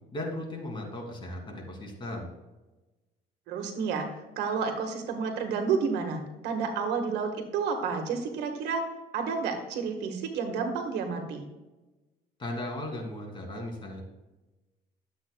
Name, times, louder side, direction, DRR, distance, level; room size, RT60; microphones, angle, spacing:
voice 1, 0.1-2.3 12.4-14.0, left 1 dB, 30° left, 0 dB, 2.7 m, -36 dB
voice 2, 3.5-4.1 4.4-8.8 9.1-11.4, right 5 dB, 85° right, 5 dB, 1.5 m, -30 dB
12.0 x 8.0 x 2.3 m, 1.1 s
cardioid pair, 110°, 17 cm